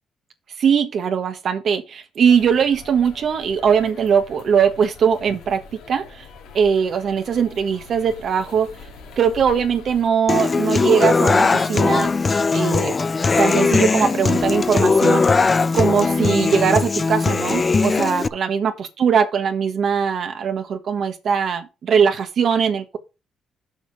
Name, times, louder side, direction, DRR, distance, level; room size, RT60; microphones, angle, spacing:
voice 1, 0.6-6.3 6.5-8.7 9.2-12.1 12.5-12.9 13.4-15.2 15.7-23.0, right 7 dB, 60° right, 1.4 m, -20 dB
sound 1, 2.3-10.1, left 4 dB, 90° left, 2.7 m, -43 dB
Human voice / Acoustic guitar, 10.3-18.3, left 4 dB, 30° left, 0.5 m, -19 dB
7.3 x 5.2 x 6.4 m
cardioid pair, 90°, 0 cm